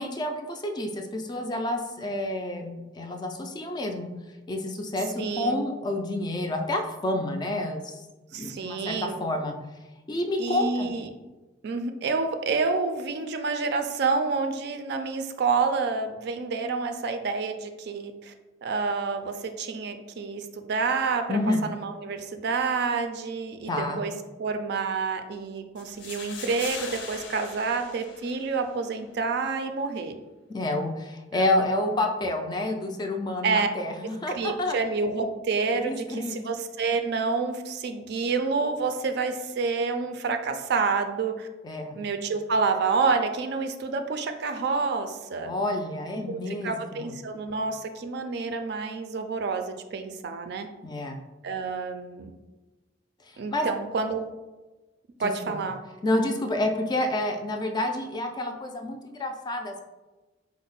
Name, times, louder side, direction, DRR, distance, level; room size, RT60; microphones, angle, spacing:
voice 1, 0.0-4.1 4.5-8.0 8.3-9.5 10.1-10.9 21.3-21.6 23.7-24.0 30.5-34.8 35.8-36.4 41.6-42.0 45.4-47.1 50.8-51.2 53.3-53.7 55.2-55.6 56.0-59.8, left 1 dB, 25° left, 4 dB, 0.3 m, -29 dB
voice 2, 5.2-5.7 8.3-9.2 10.4-11.1 11.6-18.3 18.6-24.1 24.4-30.1 31.3-32.0 33.4-33.7 34.3-41.5 41.9-45.5 46.2-50.7 51.4-52.3 53.4-54.2 55.2-55.8, right 4 dB, 60° right, 7 dB, 0.4 m, -28 dB
sound 1, 25.8-28.8, left 5 dB, 75° left, 0.6 m, -40 dB
4.3 x 2.0 x 3.9 m, 1.1 s
head